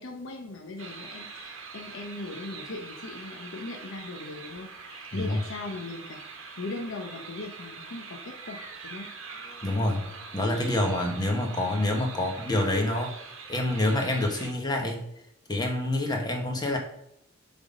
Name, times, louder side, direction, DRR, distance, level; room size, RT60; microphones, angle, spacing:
voice 1, 0.0-6.2 6.6-9.1 12.1-12.3, left 2 dB, 75° left, 2 dB, 0.7 m, -39 dB
sound 1, 0.8-14.5, right 4 dB, 85° right, 1.0 m, -43 dB
voice 2, 9.6-10.1 10.3-13.1 13.5-15.1 15.5-16.8, left 1 dB, 20° left, 2 dB, 0.9 m, -27 dB
6.1 x 3.6 x 5.0 m, 0.78 s
head